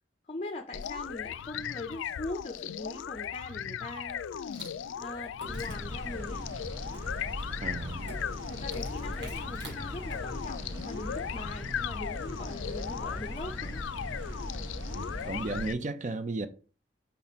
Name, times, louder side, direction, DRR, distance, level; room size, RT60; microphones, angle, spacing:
voice 1, 0.3-4.2 5.0-6.5 8.5-13.8, left 2 dB, 30° left, 0.5 m, -41 dB
sound 1, 0.7-15.7, left 8 dB, 80° left, 0.3 m, -38 dB
Insect, 4.4-11.2, right 2 dB, 60° right, 2.3 m, -51 dB
sound 2, 5.5-15.7, equal, 85° right, 1.6 m, -39 dB
voice 2, 7.6-8.1 14.9-16.5, right 2 dB, 40° right, 0.5 m, -34 dB
5.5 x 4.2 x 4.2 m
head